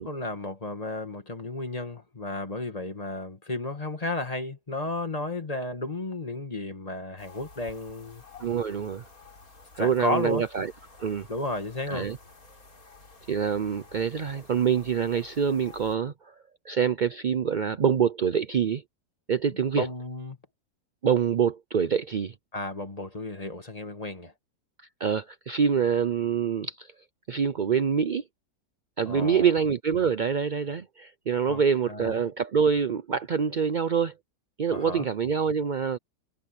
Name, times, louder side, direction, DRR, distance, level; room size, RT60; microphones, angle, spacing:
voice 1, 0.0-8.2 9.8-10.5 11.3-12.1 19.7-20.4 22.5-24.3 29.1-29.5 31.5-31.6 31.9-32.2 34.7-35.1, left 2 dB, 25° left, 2.2 m, -33 dB
sound 1, 7.2-16.0, left 3 dB, 60° left, 4.6 m, -51 dB
voice 2, 8.4-9.0 9.7-10.7 11.0-11.3 11.9-12.2 13.3-16.3 16.7-18.8 19.3-19.9 21.0-22.3 25.0-26.9 27.3-28.2 29.0-34.1 34.6-36.0, right 7 dB, 70° right, 0.4 m, -25 dB
omnidirectional pair, 1.7 m